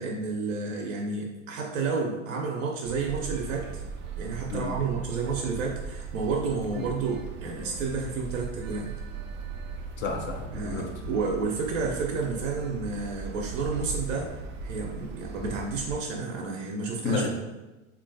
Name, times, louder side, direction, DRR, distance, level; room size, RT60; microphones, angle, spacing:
voice 1, 0.0-3.8 4.2-8.9 10.5-14.3 14.6-17.3, right 4 dB, 70° right, 0 dB, 0.6 m, -31 dB
sound 1, 2.8-16.0, right 4 dB, 30° right, 0.4 m, -38 dB
voice 2, 4.5-4.9 10.0-10.8 17.0-17.3, left 4 dB, 30° left, 2 dB, 0.5 m, -31 dB
3.7 x 2.4 x 2.6 m, 1.1 s
hypercardioid pair, 80°, 40 cm